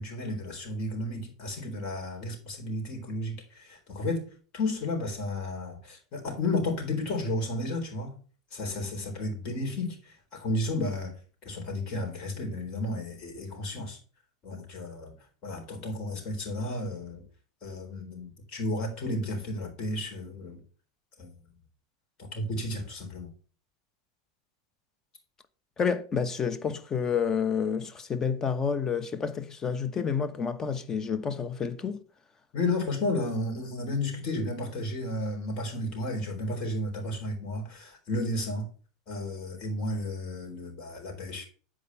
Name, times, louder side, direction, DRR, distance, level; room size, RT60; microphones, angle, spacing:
voice 1, 0.0-4.2 4.5-8.1 8.5-11.1 11.4-14.0 14.4-15.1 15.4-17.2 17.6-20.6 21.2-21.3 22.3-23.3 32.5-38.7 39.1-41.5, left 2 dB, 45° left, 3.9 m, -32 dB
voice 2, 25.8-32.0, left 6 dB, 25° left, 1.0 m, -29 dB
8.5 x 4.9 x 5.5 m
supercardioid pair, 115°, 2 cm